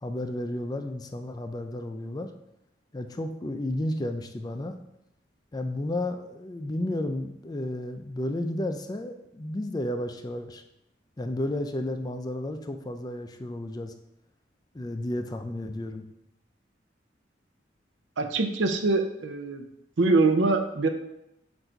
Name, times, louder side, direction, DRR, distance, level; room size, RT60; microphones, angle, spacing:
voice 1, 0.0-2.3 2.9-4.8 5.5-10.6 11.2-13.9 14.7-16.1, left 1 dB, 20° left, 7 dB, 0.4 m, -32 dB
voice 2, 18.2-19.7 20.0-20.9, right 3 dB, 90° right, 7 dB, 0.6 m, -24 dB
7.9 x 2.6 x 4.5 m, 0.83 s
head